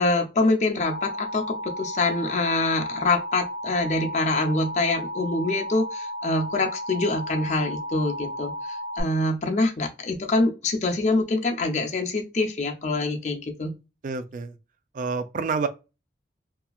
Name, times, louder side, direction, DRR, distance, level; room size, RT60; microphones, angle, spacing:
voice 1, 0.0-13.7, left 2 dB, 40° left, 0.5 m, -25 dB
Alarm, 0.8-9.0, equal, 5° left, 0.9 m, -34 dB
voice 2, 14.0-14.5 14.9-15.7, right 4 dB, 45° right, 0.3 m, -28 dB
2.9 x 2.3 x 2.2 m
head